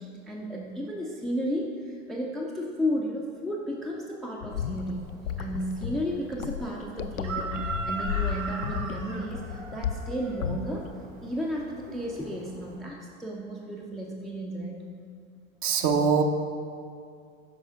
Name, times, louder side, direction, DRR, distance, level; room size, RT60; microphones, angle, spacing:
voice 1, 0.0-5.0 5.4-10.9 11.2-14.8, equal, ahead, -1 dB, 0.4 m, -33 dB
sound 1, 4.4-11.0, left 8 dB, 80° left, 0.5 m, -34 dB
Chicken rooster, 4.5-12.8, right 3 dB, 75° right, 1.2 m, -40 dB
voice 2, 15.6-16.2, right 6 dB, 30° right, 5 dB, 0.7 m, -22 dB
10.0 x 5.5 x 3.6 m, 2.3 s
figure-of-eight pair, 85°, 40 cm